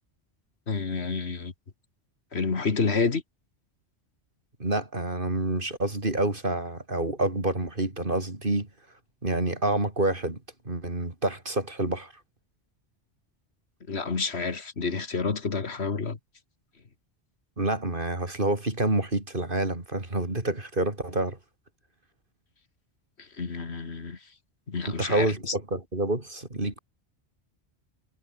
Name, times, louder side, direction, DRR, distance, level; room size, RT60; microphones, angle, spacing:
voice 1, 0.7-1.5 2.3-3.2 13.9-16.2 23.2-24.2 24.7-25.5, left 4 dB, 65° left, 2.1 m, -29 dB
voice 2, 4.6-8.7 9.2-10.4 10.6-12.1 17.6-21.4 24.9-26.8, right 2 dB, 50° right, 4.2 m, -28 dB
omnidirectional pair, 1.2 m